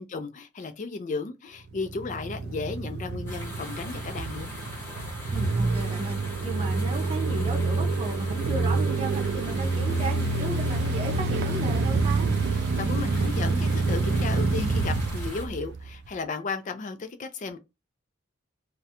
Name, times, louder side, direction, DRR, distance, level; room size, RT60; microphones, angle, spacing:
voice 1, 0.0-4.5 12.7-17.6, left 4 dB, 40° left, 0.4 m, -34 dB
sound 1, 1.7-16.1, right 3 dB, 55° right, 0.3 m, -27 dB
sound 2, 3.3-15.5, left 1 dB, 10° left, 1.0 m, -42 dB
voice 2, 5.3-12.3, right 3 dB, 30° right, 0.7 m, -35 dB
2.4 x 2.1 x 2.8 m
head